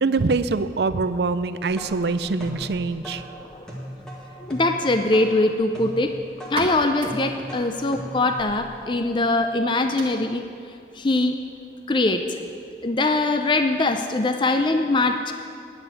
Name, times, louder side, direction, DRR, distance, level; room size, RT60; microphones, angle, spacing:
voice 1, 0.0-3.2, right 3 dB, 65° right, 12 dB, 0.5 m, -24 dB
sound 1, 1.4-9.2, equal, 5° left, 1.7 m, -39 dB
voice 2, 4.4-6.1 6.5-10.4 11.0-11.4 11.9-12.2 12.8-15.3, left 2 dB, 25° left, 7 dB, 0.5 m, -22 dB
sound 2, 6.4-13.8, right 1 dB, 30° right, 1.6 m, -40 dB
9.8 x 7.2 x 9.3 m, 2.4 s
head